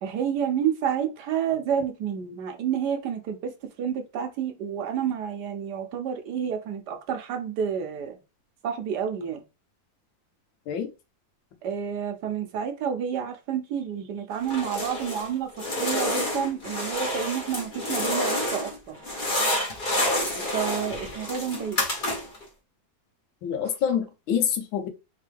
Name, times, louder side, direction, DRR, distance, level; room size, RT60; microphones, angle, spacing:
voice 1, 0.0-8.2 8.6-9.4 11.6-19.0 20.4-21.8, right 8 dB, 65° right, 1.2 m, -29 dB
sound 1, 14.4-15.3 15.6-18.8 19.0-22.4, left 1 dB, 30° left, 1.2 m, -28 dB
voice 2, 23.4-24.9, left 8 dB, 80° left, 1.6 m, -26 dB
3.7 x 3.7 x 3.3 m
omnidirectional pair, 2.1 m